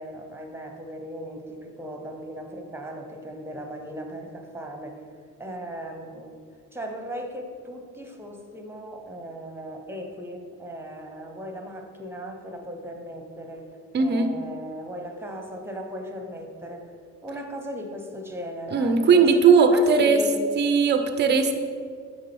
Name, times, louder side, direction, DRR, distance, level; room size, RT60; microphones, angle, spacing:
voice 1, 0.0-5.0 5.4-6.3 6.7-13.7 14.0-17.0 17.2-20.4, equal, 5° right, 4 dB, 1.0 m, -37 dB
voice 2, 13.9-14.3 18.7-20.3 20.6-21.5, right 5 dB, 25° right, 8 dB, 0.6 m, -18 dB
9.8 x 3.7 x 3.5 m, 2.1 s
hypercardioid pair, 50°, 42 cm